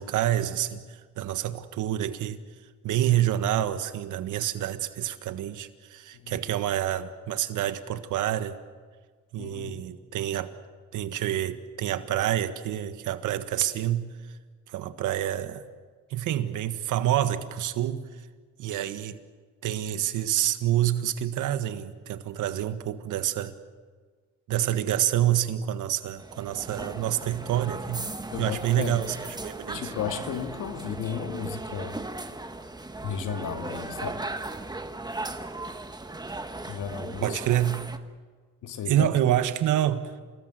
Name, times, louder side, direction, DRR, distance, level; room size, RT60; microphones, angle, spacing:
voice 1, 0.0-2.4 2.8-8.6 9.3-10.5 10.9-14.1 14.7-15.7 16.1-18.1 18.6-19.2 19.6-23.5 24.5-28.1 28.4-29.9 37.2-37.9 38.9-40.1, right 12 dB, 80° right, 1.6 m, -27 dB
voice 2, 9.4-9.8 28.3-29.0 29.7-32.0 33.0-34.2 36.7-37.4 38.6-39.1, left 7 dB, 80° left, 2.4 m, -34 dB
sound 1, 26.2-38.0, right 2 dB, 15° right, 1.5 m, -37 dB
28.5 x 19.5 x 7.6 m
cardioid pair, 90°, 30 cm